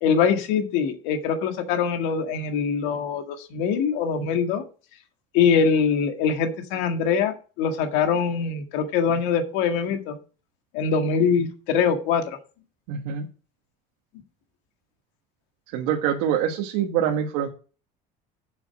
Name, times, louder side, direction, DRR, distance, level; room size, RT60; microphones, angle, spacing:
voice 1, 0.0-4.6 5.3-10.2 10.7-12.4, left 6 dB, 80° left, 6 dB, 1.8 m, -23 dB
voice 2, 12.9-13.3 15.7-17.5, right 9 dB, 85° right, 0 dB, 1.5 m, -25 dB
8.2 x 6.4 x 6.1 m, 0.37 s
cardioid pair, 135°, 18 cm